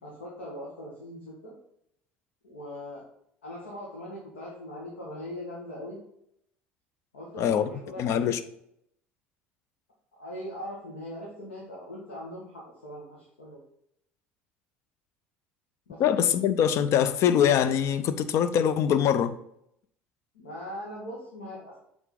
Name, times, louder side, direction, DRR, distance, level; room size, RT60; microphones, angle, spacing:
voice 1, 0.0-1.5 2.4-3.0 3.4-6.0 7.1-8.4 10.2-13.6 15.9-16.0 20.3-21.8, left 1 dB, 80° left, 1.5 m, -40 dB
voice 2, 7.4-7.7 8.0-8.4 16.0-19.4, left 9 dB, 50° left, 0.5 m, -23 dB
8.0 x 3.8 x 3.8 m
hypercardioid pair, 65°, 6 cm